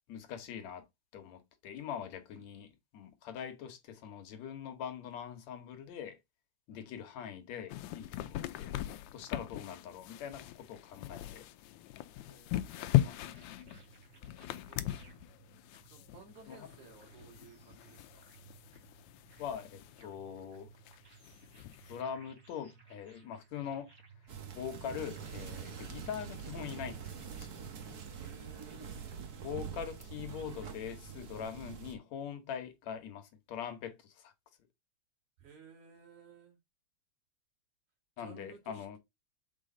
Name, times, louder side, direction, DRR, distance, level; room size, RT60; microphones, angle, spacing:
voice 1, 0.1-0.9 1.1-6.2 6.7-8.7 9.1-11.5 12.8-13.5 16.5-16.7 19.4-20.7 21.9-23.9 24.5-27.5 29.4-34.3 38.2-39.0, left 8 dB, 70° left, 2.4 m, -43 dB
voice 2, 2.3-2.7 6.7-6.9 12.2-14.9 15.9-18.2 28.2-29.1 35.4-36.6 38.2-39.0, right 5 dB, 80° right, 4.8 m, -58 dB
sound 1, 7.7-20.1 20.4-20.5 20.7-22.0, left 15 dB, 90° left, 2.1 m, -38 dB
sound 2, 12.7-29.5, right 5 dB, 30° right, 3.1 m, -60 dB
sound 3, 24.3-32.0, right 7 dB, 50° right, 1.2 m, -45 dB
7.3 x 5.1 x 3.8 m
omnidirectional pair, 3.4 m